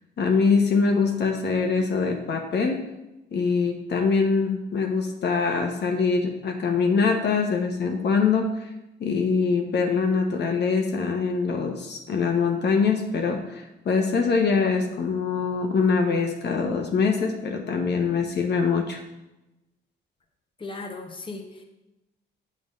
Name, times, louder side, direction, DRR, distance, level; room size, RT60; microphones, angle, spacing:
voice 1, 0.2-2.8 3.3-8.7 9.0-19.0, left 5 dB, 60° left, 2 dB, 1.1 m, -23 dB
voice 2, 20.6-21.6, left 3 dB, 25° left, 3 dB, 1.2 m, -37 dB
7.2 x 4.0 x 6.6 m, 0.97 s
cardioid pair, 90°, 20 cm